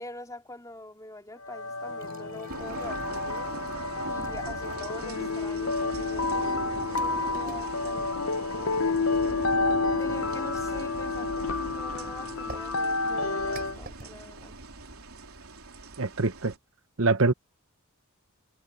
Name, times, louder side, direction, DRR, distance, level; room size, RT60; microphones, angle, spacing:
voice 1, 0.0-3.6 4.0-8.9 10.0-14.5, left 1 dB, 15° left, 3.4 m, -44 dB
sound 1, 1.4-13.8, left 3 dB, 70° left, 0.8 m, -30 dB
sound 2, 2.0-9.6 12.5-14.1, right 3 dB, 45° right, 6.8 m, -51 dB
sound 3, 2.5-16.6, right 2 dB, 80° right, 3.5 m, -41 dB
voice 2, 16.0-16.5 17.0-17.3, right 3 dB, 65° right, 1.0 m, -24 dB
head